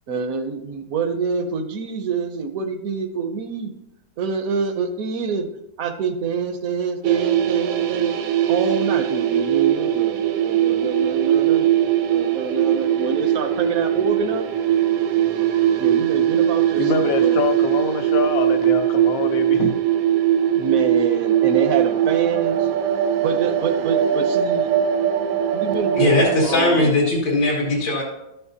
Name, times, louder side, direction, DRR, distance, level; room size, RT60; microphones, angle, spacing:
voice 1, 0.1-3.7 4.2-5.5 5.8-8.1 8.5-14.5 15.8-17.4 20.6-22.7 23.2-24.7 25.5-26.2 26.4-27.0, right 5 dB, 65° right, 7 dB, 0.9 m, -26 dB
sound 1, 7.0-26.4, right 10 dB, 85° right, 1.5 m, -20 dB
voice 2, 16.8-19.8, left 5 dB, 60° left, 7 dB, 1.0 m, -24 dB
voice 3, 26.0-28.0, left 2 dB, 85° left, -4 dB, 2.4 m, -19 dB
13.0 x 5.9 x 2.7 m, 0.88 s
omnidirectional pair, 2.1 m